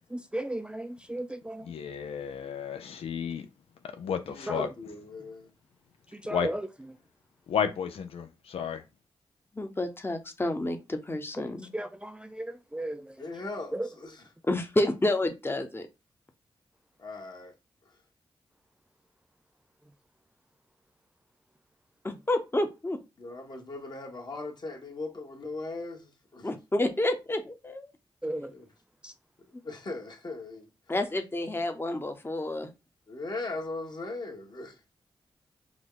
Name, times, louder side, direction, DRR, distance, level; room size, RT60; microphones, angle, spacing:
voice 1, 0.1-1.7 4.5-4.7 6.1-6.7 11.4-13.3 13.7-13.9 28.2-28.5 29.0-29.1, right 1 dB, 10° right, 0.4 m, -35 dB
voice 2, 1.6-3.5 3.9-4.7 6.3-6.5 7.5-8.8, left 7 dB, 85° left, 0.4 m, -32 dB
voice 3, 4.3-5.5 13.2-14.2 17.0-17.5 23.2-26.5 28.5-28.7 29.6-30.7 33.1-34.8, left 2 dB, 45° left, 1.5 m, -39 dB
voice 4, 9.5-11.7 14.5-15.9 22.0-23.0 26.4-27.9 29.5-29.6 30.9-32.7, left 1 dB, 25° left, 0.9 m, -29 dB
4.9 x 2.3 x 3.9 m
cardioid pair, 50°, 10 cm